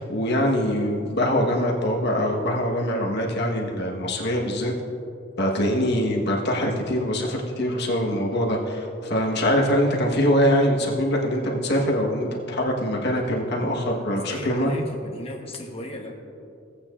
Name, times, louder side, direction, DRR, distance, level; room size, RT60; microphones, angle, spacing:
voice 1, 0.0-4.7 5.4-14.7, equal, 60° left, -1 dB, 1.3 m, -23 dB
voice 2, 14.1-16.1, left 1 dB, 30° left, 1 dB, 1.1 m, -36 dB
16.5 x 8.6 x 2.5 m, 2.6 s
head